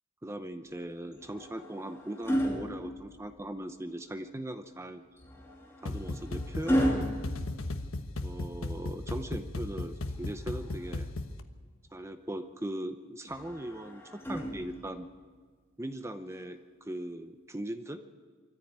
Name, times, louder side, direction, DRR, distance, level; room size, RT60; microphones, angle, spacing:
voice 1, 0.2-5.0 5.8-7.1 8.2-11.1 11.9-15.1 15.8-18.0, right 1 dB, 15° right, 8 dB, 0.8 m, -39 dB
sound 1, 1.1-3.6 5.2-8.4 10.1-11.3 13.3-15.1 16.3-16.5, equal, 10° left, 2.8 m, -34 dB
sound 2, 5.8-11.4, left 2 dB, 80° left, 1.2 m, -36 dB
24.5 x 14.5 x 8.9 m, 1.5 s
head